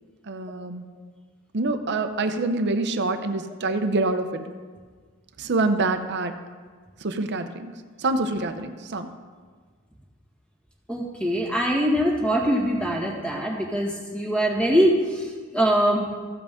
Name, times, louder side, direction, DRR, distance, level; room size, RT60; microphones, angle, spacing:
voice 1, 0.3-0.8 1.5-4.4 5.4-6.3 7.0-7.7 8.0-9.1, right 2 dB, 55° right, 7 dB, 0.7 m, -26 dB
voice 2, 10.9-15.3 15.5-16.0, equal, 5° left, -2 dB, 1.7 m, -23 dB
14.5 x 7.5 x 3.7 m, 1.5 s
head